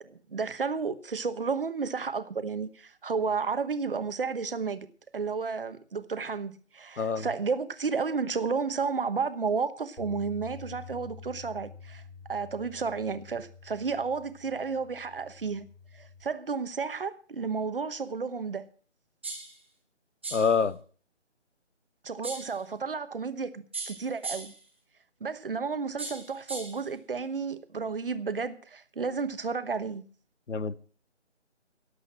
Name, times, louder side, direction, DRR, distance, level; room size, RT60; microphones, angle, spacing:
voice 1, 0.0-4.9 5.1-12.0 12.3-15.7 15.9-18.7 22.0-24.6 25.2-30.0, right 5 dB, 50° right, 1.2 m, -32 dB
Bass guitar, 10.0-16.2, left 5 dB, 10° left, 1.9 m, -48 dB
sound 1, 19.2-19.6 20.2-20.6 22.2-22.6 23.7-24.6 26.0-26.8, right 3 dB, 10° right, 0.8 m, -38 dB
voice 2, 20.3-20.8 30.5-30.8, left 5 dB, 75° left, 1.2 m, -26 dB
17.5 x 8.2 x 6.0 m
figure-of-eight pair, 165°, 36 cm